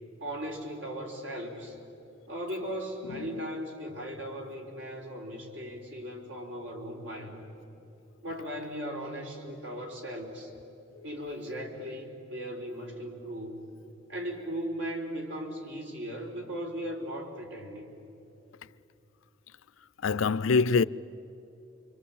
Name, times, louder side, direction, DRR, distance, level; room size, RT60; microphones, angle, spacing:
voice 1, 0.2-1.8 2.3-7.4 8.2-10.5 11.0-13.7 14.1-18.0, equal, 65° right, 4.1 m, -37 dB
voice 2, 20.0-20.8, left 4 dB, 90° left, 0.5 m, -24 dB
28.0 x 24.0 x 8.7 m
head